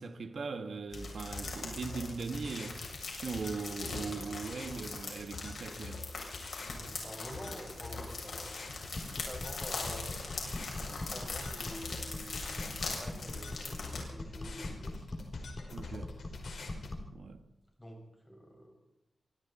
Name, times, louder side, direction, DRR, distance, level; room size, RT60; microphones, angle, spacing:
voice 1, 0.0-6.0 15.7-16.1 17.1-17.4, right 4 dB, 70° right, 1.6 m, -40 dB
sound 1, 0.9-16.9, left 3 dB, 80° left, 4.9 m, -47 dB
sound 2, 0.9-14.0, left 3 dB, 65° left, 7.6 m, -42 dB
voice 2, 6.8-8.5 9.0-10.1 10.7-15.0 17.8-18.9, equal, 10° left, 6.0 m, -48 dB
sound 3, 8.9-17.1, left 2 dB, 30° left, 2.9 m, -42 dB
25.5 x 25.0 x 4.3 m
wide cardioid pair, 170°, 0 cm